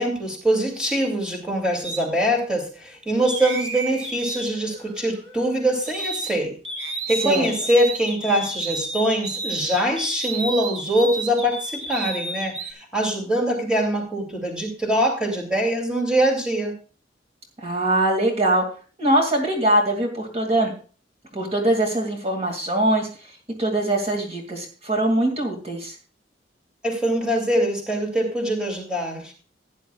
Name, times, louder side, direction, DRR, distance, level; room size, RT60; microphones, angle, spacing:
voice 1, 0.0-6.6 7.1-16.8 26.8-29.3, right 1 dB, 5° right, 1 dB, 2.6 m, -23 dB
sound 1, 1.8-2.0 3.2-6.4 6.6-12.7, right 2 dB, 85° right, 1.9 m, -32 dB
voice 2, 17.6-18.6 19.0-20.7 21.3-23.1 23.6-25.9, right 1 dB, 35° right, 1 dB, 2.3 m, -22 dB
16.0 x 10.0 x 2.3 m, 0.38 s
head